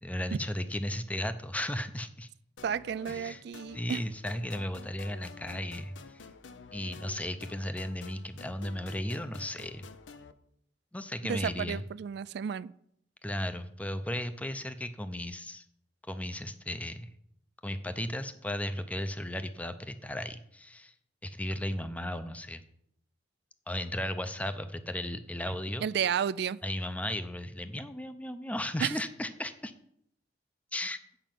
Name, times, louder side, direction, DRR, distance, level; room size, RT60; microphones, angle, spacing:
voice 1, 0.0-2.3 3.1-3.4 3.7-6.2 6.7-9.9 10.9-11.8 13.2-15.6 16.1-17.1 17.6-20.9 21.2-22.6 23.7-25.9 26.6-29.7 30.7-31.0, left 1 dB, 10° left, 10 dB, 0.6 m, -35 dB
sound 1, 2.6-10.3, left 5 dB, 85° left, 0.7 m, -50 dB
voice 2, 2.6-4.0 11.3-12.7 25.8-26.6 28.8-28.9, right 8 dB, 60° right, 18 dB, 0.3 m, -32 dB
8.9 x 5.2 x 7.6 m, 0.71 s
head